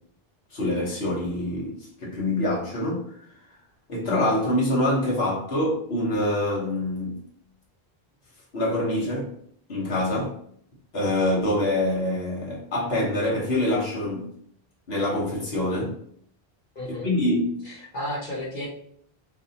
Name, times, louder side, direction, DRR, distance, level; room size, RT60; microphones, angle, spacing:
voice 1, 0.5-3.3 3.9-7.2 8.5-9.3 9.7-10.4 10.9-14.3 14.9-15.9 17.0-17.7, left 1 dB, 80° left, -5 dB, 1.4 m, -25 dB
voice 2, 16.7-17.1 17.6-18.7, left 1 dB, 55° left, -5 dB, 1.3 m, -33 dB
4.7 x 2.6 x 2.7 m, 0.65 s
omnidirectional pair, 1.0 m